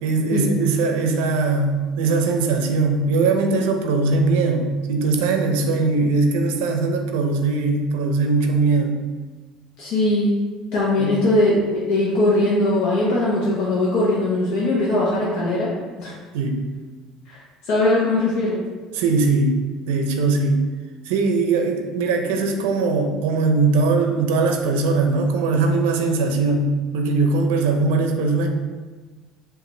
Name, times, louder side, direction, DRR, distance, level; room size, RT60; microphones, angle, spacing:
voice 1, 0.0-9.0 11.0-11.2 16.3-16.7 18.9-20.7 21.1-28.5, right 3 dB, 85° right, 4 dB, 0.5 m, -20 dB
voice 2, 9.8-10.4 10.7-16.1 17.3-17.4 17.7-18.6, left 2 dB, 70° left, -6 dB, 0.9 m, -20 dB
4.9 x 2.5 x 3.2 m, 1.3 s
supercardioid pair, 115°, 0 cm